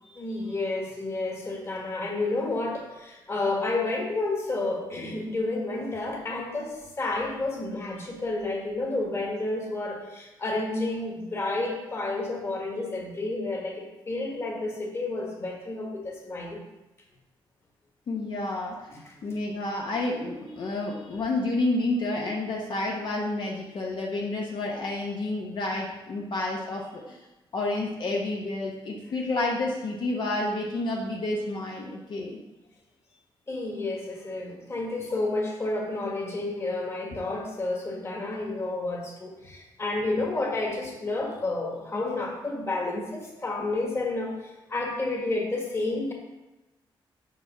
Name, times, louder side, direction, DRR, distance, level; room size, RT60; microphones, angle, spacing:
voice 1, 0.2-16.6 18.9-19.1 33.5-44.4 44.7-46.1, left 2 dB, 30° left, -1 dB, 1.6 m, -30 dB
voice 2, 18.1-18.7 19.2-27.2 27.5-32.4, left 2 dB, 55° left, -2 dB, 1.0 m, -30 dB
5.9 x 5.3 x 5.6 m, 1.0 s
wide cardioid pair, 135°, 9 cm